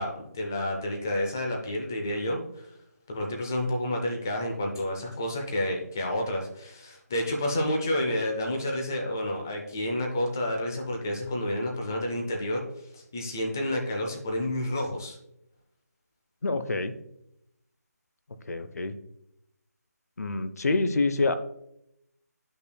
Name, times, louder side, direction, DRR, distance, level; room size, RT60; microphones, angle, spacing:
voice 1, 0.0-2.7 3.1-12.6 12.9-15.2, left 1 dB, 10° left, 1 dB, 0.4 m, -30 dB
voice 2, 16.4-16.9 18.5-18.9 20.2-21.3, left 3 dB, 65° left, 11 dB, 0.7 m, -26 dB
10.0 x 5.6 x 2.2 m, 0.80 s
figure-of-eight pair, 175°, 9 cm